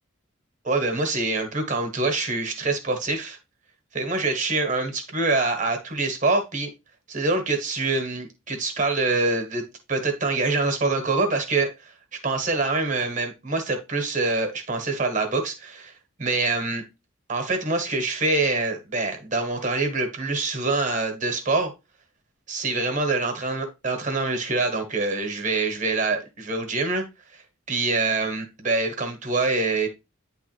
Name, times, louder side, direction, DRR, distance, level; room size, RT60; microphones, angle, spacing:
voice 1, 0.6-3.4 3.9-6.7 7.1-9.6 9.9-11.9 12.2-15.9 16.2-16.8 17.3-21.7 22.5-27.0 27.3-27.4 27.7-29.9, right 3 dB, 35° right, 1.5 m, -25 dB
9.7 x 3.4 x 3.3 m
head